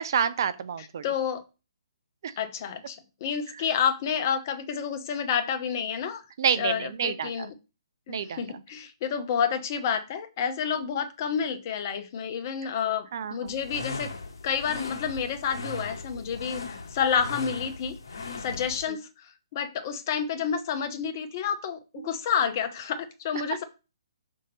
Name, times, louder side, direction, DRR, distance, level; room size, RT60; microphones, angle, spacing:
voice 1, 0.0-1.0 2.2-2.3 3.5-3.6 6.4-7.5 8.1-8.6 13.1-13.6 18.9-19.0 22.0-22.1, right 7 dB, 55° right, 0.5 m, -29 dB
voice 2, 1.0-1.4 2.4-6.2 6.6-7.5 8.1-14.1 14.4-17.9 18.4-19.1 19.5-23.6, left 7 dB, 40° left, 1.0 m, -29 dB
sound 1, 13.5-18.8, left 3 dB, 65° left, 1.8 m, -38 dB
6.5 x 3.7 x 4.2 m
hypercardioid pair, 140°, 3 cm